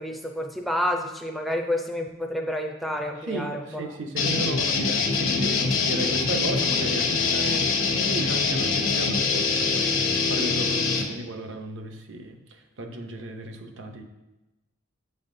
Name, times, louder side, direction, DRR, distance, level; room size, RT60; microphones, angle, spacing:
voice 1, 0.0-3.8, left 1 dB, ahead, 2 dB, 0.4 m, -29 dB
voice 2, 3.2-14.0, right 1 dB, 65° right, 5 dB, 0.7 m, -35 dB
sound 1, 4.2-11.0, left 4 dB, 70° left, 0.9 m, -24 dB
8.0 x 5.5 x 2.6 m, 1.0 s
head